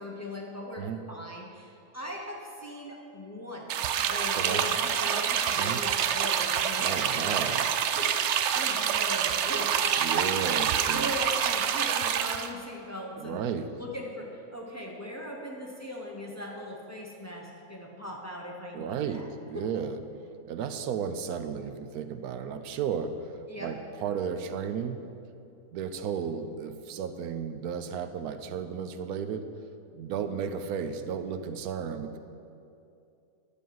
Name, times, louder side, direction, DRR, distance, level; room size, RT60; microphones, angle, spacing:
voice 1, 0.0-7.5 7.9-13.4 13.8-19.3 19.5-19.6 23.5-23.7, left 1 dB, 15° left, -1 dB, 0.9 m, -39 dB
sound 1, 3.7-12.5, right 8 dB, 65° right, 0.7 m, -27 dB
voice 2, 6.8-7.7 10.0-11.1 13.2-13.7 18.7-20.0 20.5-25.0 25.7-29.5 29.9-32.2, right 7 dB, 90° right, 9 dB, 1.1 m, -34 dB
10.0 x 5.4 x 7.6 m, 2.6 s
omnidirectional pair, 1.5 m